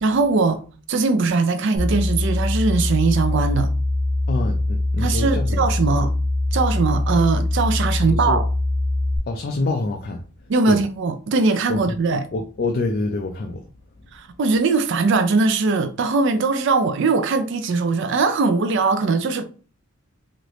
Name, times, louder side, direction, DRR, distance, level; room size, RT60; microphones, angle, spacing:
voice 1, 0.0-3.7 5.0-6.1 6.5-8.5 10.5-12.3 14.1-19.4, right 4 dB, 60° right, 0.4 m, -20 dB
sound 1, 1.7-9.2, left 2 dB, 5° left, 0.9 m, -22 dB
voice 2, 4.3-6.0 7.9-8.4 9.3-10.2 10.7-10.8 11.7-11.9 12.3-13.7, left 2 dB, 45° left, 0.4 m, -26 dB
3.2 x 2.5 x 3.0 m
head